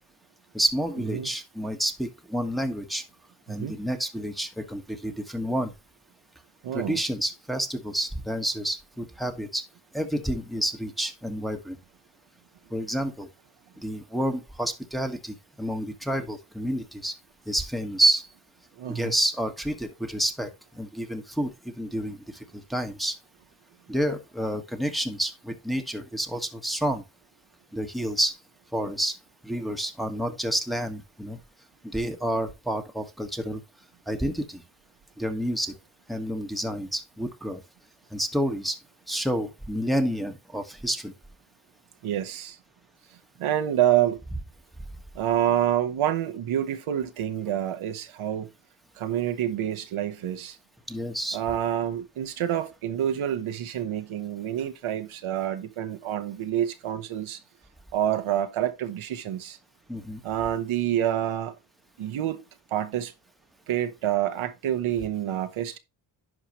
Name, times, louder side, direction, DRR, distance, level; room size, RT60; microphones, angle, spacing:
voice 1, 0.5-3.0 3.5-5.7 6.7-9.6 9.9-11.8 12.7-13.3 13.8-17.1 17.5-18.3 18.9-20.5 20.8-22.2 22.7-23.1 23.9-27.0 27.7-28.4 28.7-29.1 29.4-31.4 31.9-33.6 34.1-34.6 35.2-35.7 36.1-37.6 38.1-38.8 39.1-41.1 50.9-51.4 59.9-60.2, right 1 dB, ahead, 1.4 m, -29 dB
voice 2, 6.6-7.0 18.8-19.1 42.0-42.6 43.4-44.2 45.1-48.5 49.0-50.6 51.3-57.4 57.9-59.6 60.2-61.6 62.0-62.4 62.7-63.1 63.7-65.8, right 11 dB, 80° right, 1.1 m, -27 dB
11.0 x 4.9 x 3.0 m
cardioid pair, 75°, 48 cm